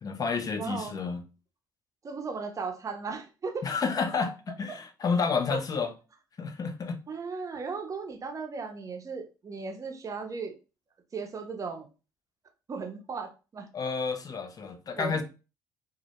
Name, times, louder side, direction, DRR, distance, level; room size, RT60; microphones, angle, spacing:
voice 1, 0.0-1.2 3.6-5.9 6.4-7.0 13.7-15.2, left 5 dB, 35° left, 0.5 m, -30 dB
voice 2, 0.6-1.0 2.0-3.6 5.5-5.6 7.1-10.5 11.1-11.9 12.7-13.7 15.0-15.2, right 4 dB, 30° right, 0.6 m, -36 dB
2.1 x 2.1 x 2.8 m
hypercardioid pair, 55°, 10 cm